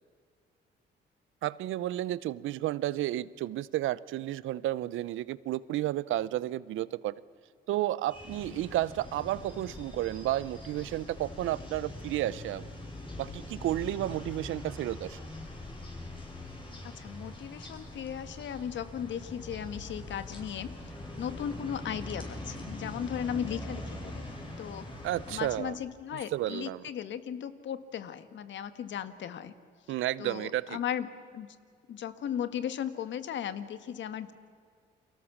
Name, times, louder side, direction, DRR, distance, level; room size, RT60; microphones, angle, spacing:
voice 1, 1.4-7.2 7.7-12.6 13.2-15.2 25.0-25.8 26.3-26.8 29.9-30.8, right 14 dB, 85° right, 19 dB, 0.7 m, -32 dB
sound 1, 8.1-25.6, left 1 dB, 25° left, 6.7 m, -43 dB
voice 2, 16.8-20.7 21.2-24.2 24.6-24.9 25.3-29.5 30.2-31.5 31.9-34.3, left 9 dB, 70° left, 12 dB, 1.6 m, -36 dB
29.5 x 23.5 x 7.3 m, 2.2 s
cardioid pair, 90°, 20 cm